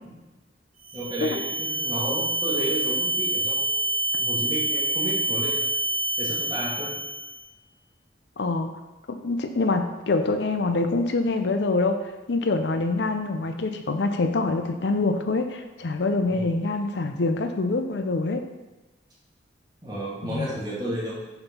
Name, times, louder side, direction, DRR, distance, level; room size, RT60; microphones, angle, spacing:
sound 1, 0.8-7.4, right 1 dB, 5° right, 1.5 m, -27 dB
voice 1, 0.9-5.6 6.2-6.9 16.3-16.5 19.8-21.1, right 1 dB, 25° right, -6 dB, 2.2 m, -32 dB
voice 2, 8.4-8.7 9.2-12.0 12.3-18.4 20.2-20.5, left 3 dB, 65° left, 7 dB, 0.5 m, -25 dB
6.7 x 4.5 x 5.6 m, 1.1 s
head